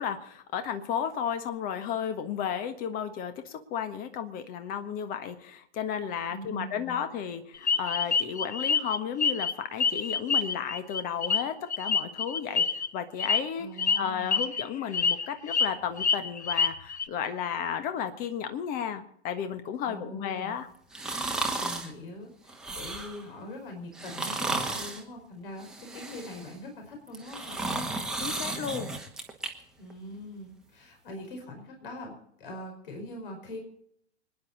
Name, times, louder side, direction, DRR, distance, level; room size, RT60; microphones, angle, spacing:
voice 1, 0.0-12.6 12.9-13.7 14.0-20.7 28.2-28.9, left 8 dB, 25° left, 9 dB, 1.5 m, -33 dB
voice 2, 6.3-7.0 13.6-14.4 19.8-20.6 21.6-27.7 29.8-33.6, left 1 dB, 50° left, 3 dB, 5.2 m, -42 dB
sound 1, 7.7-9.5 9.8-12.9 13.2-13.4 13.8-14.0 14.3-14.6 14.9-15.7 16.0-17.0, left 5 dB, 75° left, 1.0 m, -26 dB
sound 2, 20.9-21.9 22.5-23.2 23.9-25.0 25.6-26.5 27.1-29.5 29.9-30.0, right 2 dB, ahead, 1.6 m, -33 dB
26.0 x 10.5 x 4.1 m, 0.71 s
figure-of-eight pair, 110°, 34 cm